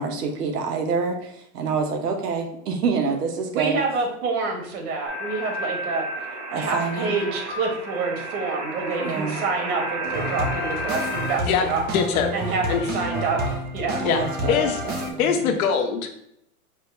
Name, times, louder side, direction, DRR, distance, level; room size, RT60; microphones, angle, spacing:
voice 1, 0.0-3.8 6.5-7.2 9.0-9.4 14.0-14.9, right 5 dB, 90° right, 4 dB, 1.1 m, -27 dB
voice 2, 3.5-6.0 6.5-11.8 12.3-14.0, right 4 dB, 70° right, 2 dB, 1.5 m, -27 dB
sound 1, 5.1-11.3, equal, 45° right, 1.8 m, -32 dB
sound 2, 10.0-15.1, right 1 dB, 20° right, 0.6 m, -30 dB
voice 3, 11.9-12.3 12.7-12.9 14.0-14.2 14.5-14.8 15.2-16.1, left 6 dB, 65° left, 5 dB, 1.0 m, -22 dB
5.0 x 3.9 x 2.3 m, 0.73 s
hypercardioid pair, 130°, 45 cm